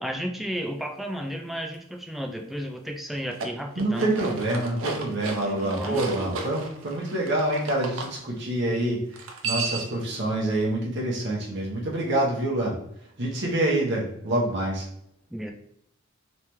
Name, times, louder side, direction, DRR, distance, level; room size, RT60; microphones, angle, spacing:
voice 1, 0.0-4.1 5.4-6.1 15.3-15.5, equal, ahead, 3 dB, 0.3 m, -33 dB
sound 1, 3.2-8.1 9.1-10.0, right 3 dB, 80° right, 0.6 m, -34 dB
voice 2, 3.7-12.8 13.2-14.9, right 1 dB, 60° right, -3 dB, 1.0 m, -26 dB
3.3 x 3.2 x 3.0 m, 0.73 s
head